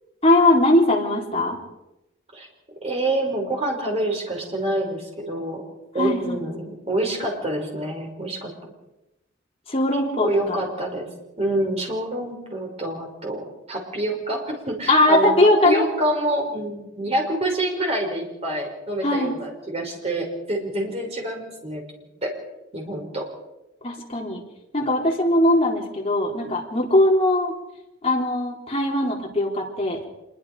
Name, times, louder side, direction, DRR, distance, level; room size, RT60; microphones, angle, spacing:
voice 1, 0.2-1.6 6.0-6.4 9.7-10.7 14.9-15.8 19.0-19.3 23.8-24.4 24.7-27.5 28.0-30.0, left 1 dB, 30° left, -1 dB, 3.9 m, -20 dB
voice 2, 2.8-5.6 5.9-8.5 9.9-11.1 11.4-21.8 22.2-22.3 22.7-23.2, right 1 dB, 30° right, 1 dB, 5.7 m, -27 dB
26.0 x 22.5 x 5.1 m, 0.93 s
head